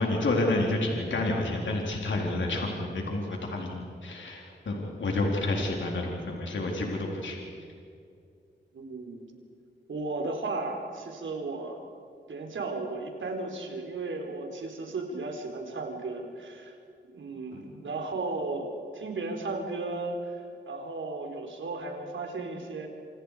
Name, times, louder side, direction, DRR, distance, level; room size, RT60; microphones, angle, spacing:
voice 1, 0.0-7.4 17.5-17.6, left 2 dB, 75° left, -1 dB, 4.1 m, -29 dB
voice 2, 8.7-9.3 9.9-11.8 12.3-16.7 17.1-18.7 18.9-22.9, right 3 dB, 80° right, 2 dB, 4.2 m, -35 dB
27.5 x 27.0 x 5.1 m, 2.5 s
wide cardioid pair, 85°, 20 cm